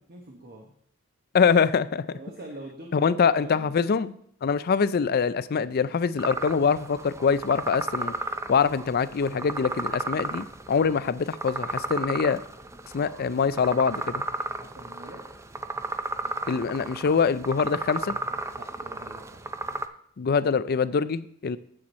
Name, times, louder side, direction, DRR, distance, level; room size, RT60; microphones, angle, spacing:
voice 1, 0.1-0.7 2.1-3.7 14.6-15.3 18.5-19.5, right 1 dB, 50° right, 1 dB, 1.2 m, -44 dB
voice 2, 1.3-2.1 2.9-4.1 4.4-8.1 8.5-12.4 12.9-14.2 16.5-18.2 20.2-21.6, left 6 dB, 50° left, 15 dB, 0.4 m, -24 dB
sound 1, 6.2-19.9, right 2 dB, 15° right, 0.5 m, -34 dB
8.6 x 7.8 x 4.2 m, 0.63 s
head